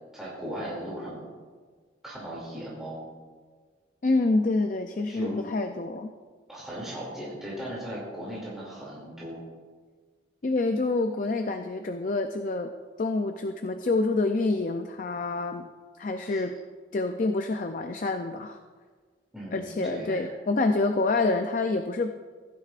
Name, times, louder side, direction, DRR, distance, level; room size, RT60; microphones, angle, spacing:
voice 1, 0.1-1.3 2.0-3.0 5.1-5.4 6.5-9.4 16.2-16.4 19.3-20.3, equal, ahead, -7 dB, 2.5 m, -37 dB
voice 2, 4.0-6.1 10.4-12.7 13.0-15.7 16.0-16.6 16.9-18.6 19.5-22.1, left 3 dB, 40° left, 6 dB, 0.4 m, -27 dB
15.5 x 10.0 x 2.5 m, 1.5 s
head